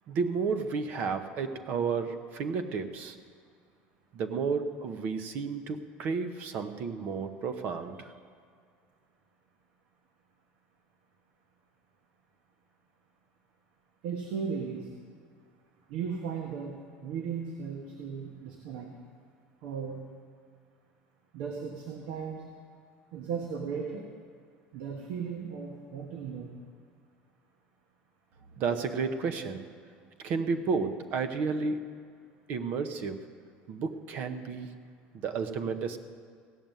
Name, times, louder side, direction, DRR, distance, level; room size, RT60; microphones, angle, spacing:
voice 1, 0.1-3.2 4.1-8.1 28.6-29.6 30.2-31.9 32.5-33.2 33.7-34.7 35.1-36.0, right 5 dB, 45° right, 8 dB, 0.9 m, -32 dB
voice 2, 14.0-14.9 15.9-18.9 19.6-20.0 21.3-22.4 23.1-24.1 24.7-26.6, right 6 dB, 65° right, 1 dB, 1.4 m, -36 dB
16.5 x 6.8 x 9.0 m, 2.2 s
cardioid pair, 170°, 4 cm